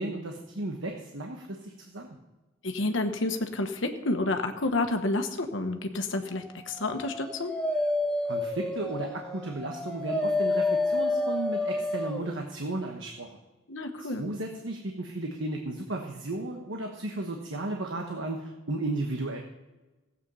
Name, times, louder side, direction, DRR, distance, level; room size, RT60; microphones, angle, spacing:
voice 1, 0.0-2.2 8.3-13.3 14.2-19.4, right 2 dB, 65° right, 2 dB, 1.2 m, -34 dB
voice 2, 2.6-7.5 13.7-14.2, left 2 dB, 65° left, 6 dB, 1.3 m, -29 dB
Dog, 6.7-12.3, left 2 dB, 5° left, 0.9 m, -29 dB
15.5 x 8.4 x 5.6 m, 1.1 s
head